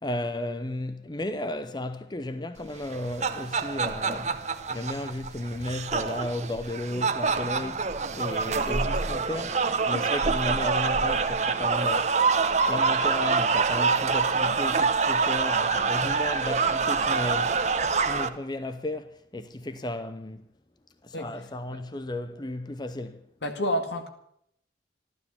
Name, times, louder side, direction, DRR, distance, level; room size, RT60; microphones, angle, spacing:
voice 1, 0.0-4.4 4.7-12.1 12.7-17.7 18.0-20.4 21.0-23.2, left 1 dB, 25° left, 0.7 m, -34 dB
sound 1, 2.8-18.3, right 4 dB, 40° right, 0.9 m, -26 dB
voice 2, 23.4-24.1, equal, 75° left, 2.2 m, -29 dB
14.5 x 12.5 x 7.1 m
head